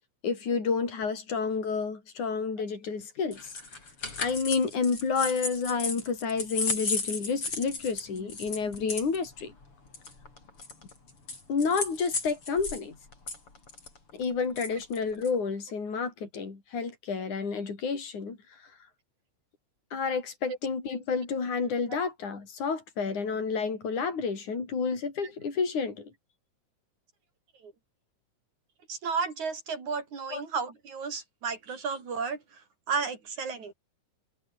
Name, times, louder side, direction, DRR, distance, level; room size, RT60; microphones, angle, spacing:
voice 1, 0.2-3.5 4.2-9.5 11.5-13.0 14.1-18.4 19.9-26.1 30.3-30.4, left 5 dB, 70° left, 6.6 m, -30 dB
sound 1, 3.3-12.8 13.1-15.4, left 3 dB, 45° left, 6.5 m, -35 dB
voice 2, 28.9-33.7, right 5 dB, 65° right, 5.8 m, -33 dB
omnidirectional pair, 3.6 m